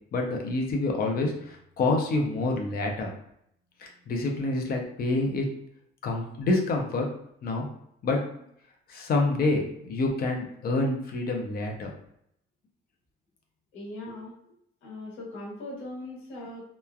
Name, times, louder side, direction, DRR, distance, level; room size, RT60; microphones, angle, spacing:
voice 1, 0.1-3.1 3.8-5.5 6.0-7.1 7.4-7.7 8.0-8.2 8.9-11.9, left 2 dB, 45° left, 2 dB, 0.5 m, -27 dB
voice 2, 13.7-14.3 14.8-16.7, left 1 dB, 75° left, -4 dB, 1.2 m, -39 dB
2.9 x 2.3 x 2.3 m, 0.72 s
cardioid pair, 175°, 21 cm